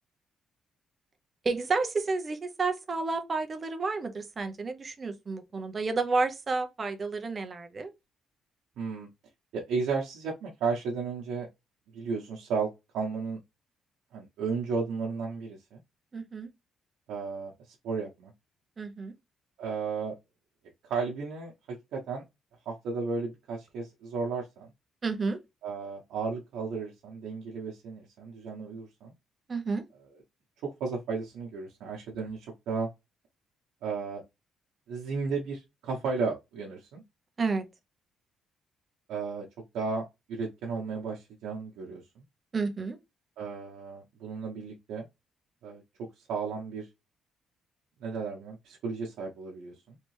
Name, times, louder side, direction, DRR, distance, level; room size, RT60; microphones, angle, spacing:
voice 1, 1.4-7.9 16.1-16.5 18.8-19.1 25.0-25.4 29.5-29.8 37.4-37.6 42.5-43.0, right 4 dB, 25° right, 0.6 m, -30 dB
voice 2, 8.8-9.1 9.5-11.5 11.9-12.7 12.9-13.4 14.1-15.8 17.1-18.3 19.6-20.1 20.9-22.2 22.7-24.7 25.6-29.1 30.6-32.9 33.8-34.2 34.9-37.0 39.1-39.4 39.7-42.2 43.4-45.1 45.6-45.8 46.2-46.9 48.0-50.0, right 4 dB, 85° right, 0.8 m, -34 dB
3.2 x 2.8 x 3.1 m
cardioid pair, 165°, 0 cm